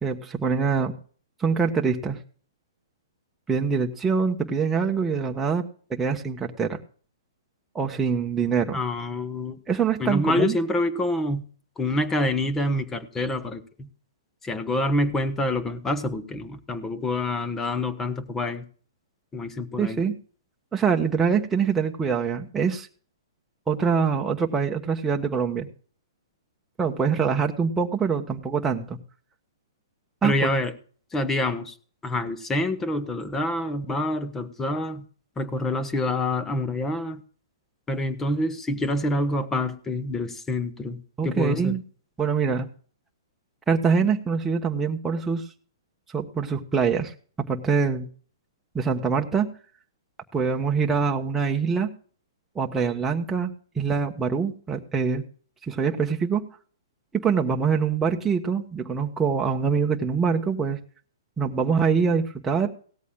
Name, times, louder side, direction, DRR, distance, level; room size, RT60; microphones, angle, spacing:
voice 1, 0.0-0.9 1.4-2.2 3.5-5.6 5.9-6.8 7.7-8.8 9.7-10.6 19.8-20.1 20.7-22.9 23.7-25.7 26.8-29.0 30.2-30.5 41.2-41.8 42.2-42.7 43.7-45.4 46.1-47.1 47.4-48.1 48.7-49.5 50.3-51.9 52.5-53.5 53.8-55.2 55.6-56.5 57.1-60.8 61.4-62.7, right 6 dB, 10° right, 2 dB, 1.1 m, -24 dB
voice 2, 8.7-9.6 10.0-11.4 11.8-13.9 14.4-18.6 19.3-20.0 30.2-30.7 31.1-31.7 32.0-35.0 35.4-37.2 37.9-41.7, left 1 dB, 15° left, 11 dB, 1.0 m, -27 dB
17.5 x 13.5 x 2.3 m, 0.43 s
hypercardioid pair, 135°, 2 cm